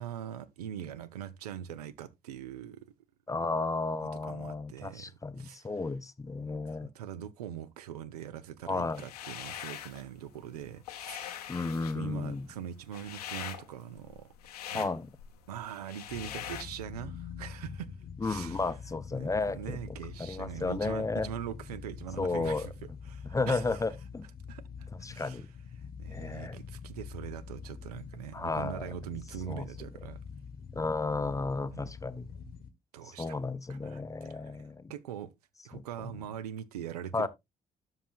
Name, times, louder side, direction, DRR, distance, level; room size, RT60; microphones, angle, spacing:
voice 1, 0.0-2.9 4.0-5.1 5.4-5.7 6.8-11.6 11.9-14.3 14.7-14.9 15.5-17.9 18.2-18.8 19.1-23.8 24.5-25.5 25.8-30.2 31.7-31.9 32.9-33.4 33.7-35.3 35.6-37.3, right 10 dB, 80° right, 0.5 m, -42 dB
voice 2, 3.3-6.9 8.7-9.0 11.5-12.5 14.7-15.1 18.2-21.3 22.2-22.7 23.3-24.3 25.0-25.5 26.1-26.6 28.3-28.9 29.5-29.7 30.7-32.3 33.0-34.9 35.7-36.1 37.1-37.3, left 3 dB, 15° left, 0.6 m, -33 dB
sound 1, 8.9-10.0 10.4-16.6, left 11 dB, 80° left, 0.8 m, -43 dB
sound 2, 16.1-32.7, left 6 dB, 50° left, 1.0 m, -45 dB
12.5 x 5.7 x 2.4 m
figure-of-eight pair, 45°, 20 cm